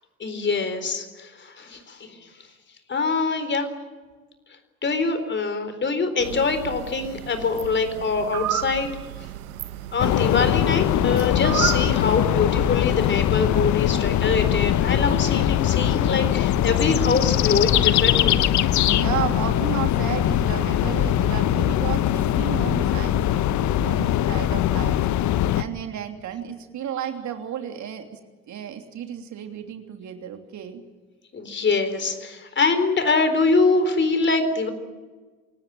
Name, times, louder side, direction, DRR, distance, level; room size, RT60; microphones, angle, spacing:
voice 1, 0.2-2.1 2.9-3.7 4.8-8.9 9.9-18.5 31.3-34.7, left 4 dB, 25° left, 9 dB, 4.2 m, -24 dB
sound 1, 6.2-12.3, right 13 dB, 75° right, 1.3 m, -32 dB
sound 2, 10.0-25.6, left 11 dB, 40° left, 1.2 m, -21 dB
voice 2, 18.9-25.0 25.5-28.2 28.5-30.8, right 9 dB, 40° right, 5 dB, 3.1 m, -33 dB
27.0 x 18.5 x 9.0 m, 1.4 s
hypercardioid pair, 75°, 43 cm